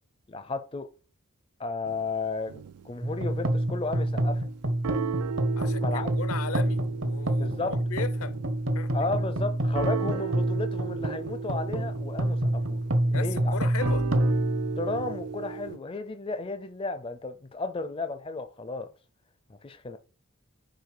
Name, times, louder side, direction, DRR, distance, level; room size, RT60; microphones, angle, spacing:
voice 1, 0.3-0.9 1.6-4.4 5.6-6.2 7.4-7.8 8.9-12.8 13.1-13.6 14.8-18.9 19.5-20.0, left 3 dB, 25° left, 0.4 m, -33 dB
sound 1, 1.9-3.0 3.3-3.7 4.1-4.5 4.8-15.8, right 7 dB, 90° right, 0.4 m, -37 dB
sound 2, 3.0-15.4, right 1 dB, 60° right, 0.9 m, -28 dB
voice 2, 5.6-8.3 8.7-8.9 13.1-14.1, left 5 dB, 70° left, 0.7 m, -37 dB
6.6 x 4.8 x 4.8 m
head